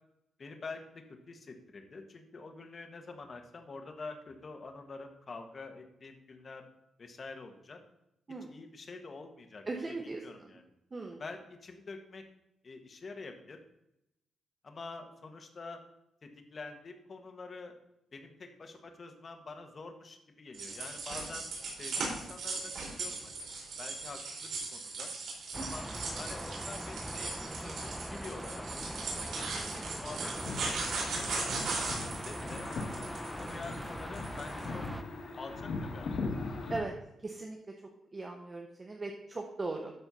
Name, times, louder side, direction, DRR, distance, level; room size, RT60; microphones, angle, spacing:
voice 1, 0.4-6.7 7.0-7.8 8.4-10.6 11.2-12.2 12.6-13.6 14.6-15.8 16.2-17.7 18.1-21.5 21.8-23.3 23.8-25.1 25.6-25.9 26.2-28.7 29.0-31.3 31.7-32.7 33.3-34.8 35.4-36.1, left 3 dB, 35° left, 5 dB, 1.4 m, -47 dB
voice 2, 9.7-10.5 10.9-11.2 21.2-21.3 25.6-25.7 36.7-36.9 37.2-37.6 38.1-39.9, right 3 dB, 25° right, 2 dB, 1.0 m, -39 dB
sound 1, 20.5-34.7, right 3 dB, 75° right, 4.0 m, -38 dB
sound 2, 25.5-35.0, right 1 dB, 5° right, 0.5 m, -42 dB
sound 3, 30.4-36.8, left 3 dB, 55° left, 2.3 m, -40 dB
12.5 x 4.5 x 5.6 m, 0.84 s
cardioid pair, 135°, 0 cm